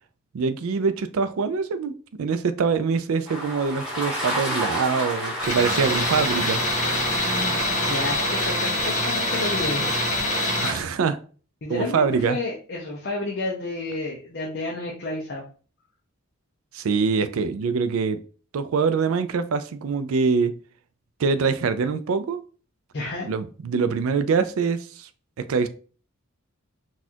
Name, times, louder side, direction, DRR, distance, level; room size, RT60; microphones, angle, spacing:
voice 1, 0.3-1.9 2.2-6.6 10.6-11.2 11.7-12.4 16.7-18.2 18.5-20.5 21.2-22.4 23.3-25.1 25.4-25.7, right 5 dB, 70° right, 0.4 m, -24 dB
sound 1, 3.3-8.3, equal, 5° right, 1.2 m, -31 dB
Tools, 5.4-10.8, left 1 dB, 35° left, 1.2 m, -24 dB
voice 2, 7.9-9.9 11.6-15.4 22.9-23.3, left 2 dB, 50° left, 0.6 m, -30 dB
4.1 x 2.4 x 2.7 m
head